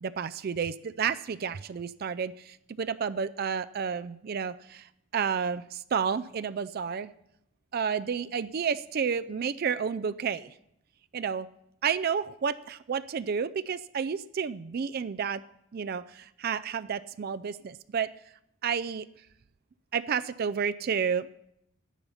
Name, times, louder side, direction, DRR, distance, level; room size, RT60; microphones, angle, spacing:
voice 1, 0.0-4.8 5.1-7.1 7.7-10.5 11.1-11.5 11.8-15.4 15.7-18.1 18.6-19.1 19.9-21.3, right 6 dB, 50° right, 13 dB, 0.4 m, -31 dB
12.0 x 10.0 x 5.6 m, 0.76 s
head